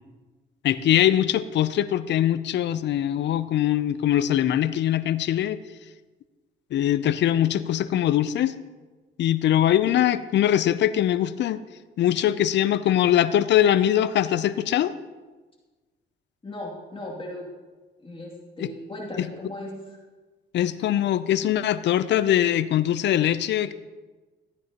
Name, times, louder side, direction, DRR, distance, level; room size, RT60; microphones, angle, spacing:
voice 1, 0.6-5.6 6.7-8.5 9.2-11.6 12.0-14.9 18.6-18.7 19.2-19.3 20.5-23.7, left 11 dB, 65° left, 15 dB, 0.5 m, -22 dB
voice 2, 16.4-17.5 18.0-19.7, left 1 dB, 25° left, -3 dB, 2.5 m, -37 dB
13.5 x 9.3 x 2.9 m, 1.3 s
cardioid pair, 90°, 20 cm